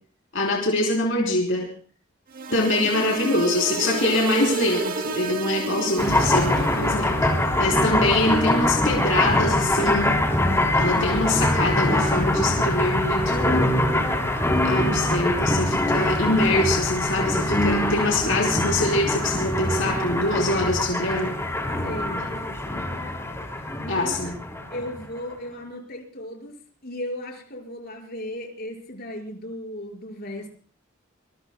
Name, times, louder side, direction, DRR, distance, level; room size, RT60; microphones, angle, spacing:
voice 1, 0.3-1.7 2.5-7.2 7.6-10.2 10.8-13.8 14.6-21.4 23.9-24.4, left 2 dB, 75° left, -1 dB, 3.6 m, -24 dB
sound 1, 2.3-7.1, right 3 dB, 45° right, 0.9 m, -30 dB
voice 2, 2.5-3.3 5.7-6.1 21.8-22.8 23.8-24.3 24.7-26.6 26.8-30.5, left 1 dB, 50° left, 0 dB, 5.2 m, -36 dB
sound 2, 6.0-25.2, left 1 dB, 15° left, 3.4 m, -23 dB
25.5 x 22.0 x 2.2 m, 0.43 s
head